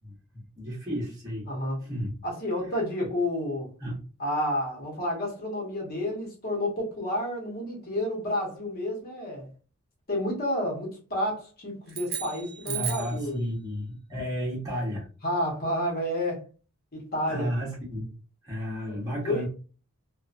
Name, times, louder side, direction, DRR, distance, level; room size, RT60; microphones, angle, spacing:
voice 1, 0.0-1.5 1.8-2.1 3.8-4.0 12.7-15.1 17.3-18.1 18.4-19.5, equal, 15° right, 1.0 m, -33 dB
voice 2, 1.5-1.8 2.2-3.7 4.2-9.5 10.1-13.4 15.2-16.4 17.1-17.5 18.9-19.0 19.2-19.5, left 1 dB, 45° left, 1.0 m, -30 dB
sound 1, 11.9-13.2, right 9 dB, 45° right, 0.7 m, -35 dB
2.8 x 2.2 x 2.4 m
head